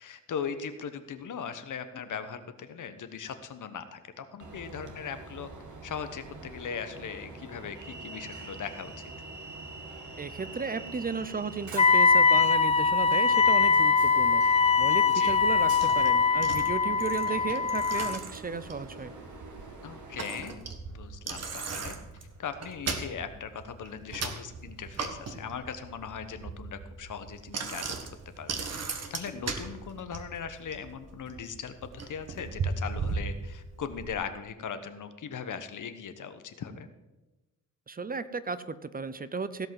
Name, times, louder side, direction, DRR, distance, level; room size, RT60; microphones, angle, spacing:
voice 1, 0.0-5.5 5.8-9.1 15.1-15.4 19.8-20.6 20.9-22.0 22.4-27.9 28.4-36.9, left 7 dB, 75° left, 9 dB, 1.2 m, -39 dB
Train, 4.4-20.5, right 3 dB, 70° right, 2.2 m, -45 dB
voice 2, 10.2-19.1 37.9-39.7, right 4 dB, 30° right, 14 dB, 0.6 m, -35 dB
Wind instrument woodwind instrument, 11.8-18.2, left 5 dB, 20° left, 0.4 m, -22 dB
Bicycle, 15.3-34.1, right 4 dB, 55° right, 1.5 m, -38 dB
16.5 x 5.6 x 7.5 m, 1.1 s
wide cardioid pair, 120°, 31 cm